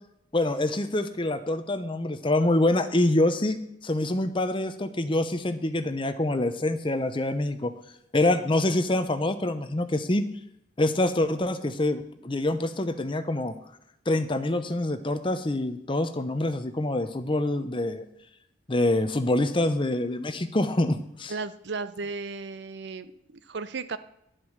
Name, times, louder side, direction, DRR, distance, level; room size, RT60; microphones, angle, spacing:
voice 1, 0.3-3.6 3.8-7.7 8.1-10.2 10.8-13.5 14.1-18.0 18.7-21.3, left 1 dB, 25° left, 9 dB, 0.8 m, -26 dB
voice 2, 21.3-24.0, right 4 dB, 65° right, 13 dB, 0.6 m, -35 dB
10.5 x 7.8 x 6.5 m, 0.80 s
head